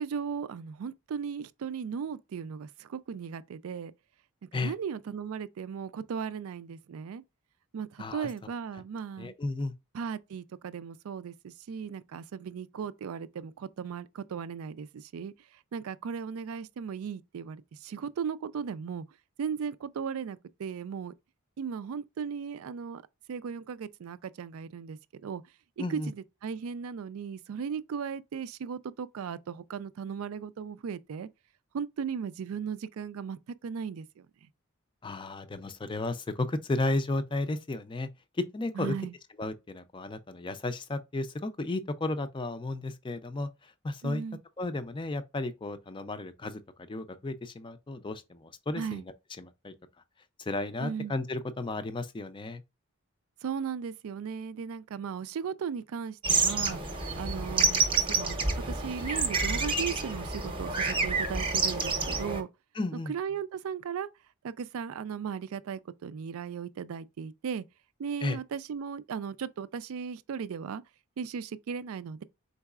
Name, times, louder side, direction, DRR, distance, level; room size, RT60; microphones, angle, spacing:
voice 1, 0.0-3.9 4.5-7.2 7.7-9.3 9.9-15.3 15.7-19.0 19.4-21.1 21.6-23.0 23.3-25.4 25.8-26.2 26.4-31.3 31.7-34.3 38.8-39.1 44.0-44.4 48.8-49.0 50.8-51.1 53.4-56.8 57.2-57.8 58.1-62.5 63.1-64.1 64.4-67.6 68.0-70.8 71.2-72.2, right 6 dB, 70° right, 0.3 m, -36 dB
voice 2, 8.0-8.3 9.2-9.7 25.8-26.1 35.0-38.1 38.3-38.9 39.4-44.2 44.6-49.7 50.4-52.6 62.7-63.1 68.2-68.4, left 2 dB, 20° left, 0.4 m, -33 dB
sound 1, 56.2-62.4, right 4 dB, 25° right, 0.8 m, -28 dB
4.5 x 4.0 x 2.3 m
head